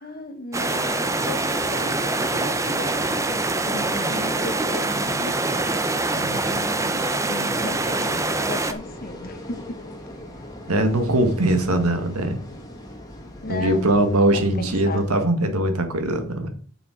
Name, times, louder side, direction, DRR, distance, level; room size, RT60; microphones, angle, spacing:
voice 1, 0.0-5.4 6.3-9.8 13.4-15.0, left 2 dB, 40° left, 1.0 m, -36 dB
sound 1, 0.5-8.7, right 2 dB, 15° right, 0.5 m, -24 dB
sound 2, 8.6-15.2, left 1 dB, 15° left, 1.7 m, -40 dB
voice 2, 10.7-12.4 13.5-16.5, right 1 dB, 80° right, 1.6 m, -21 dB
7.1 x 6.9 x 5.0 m
head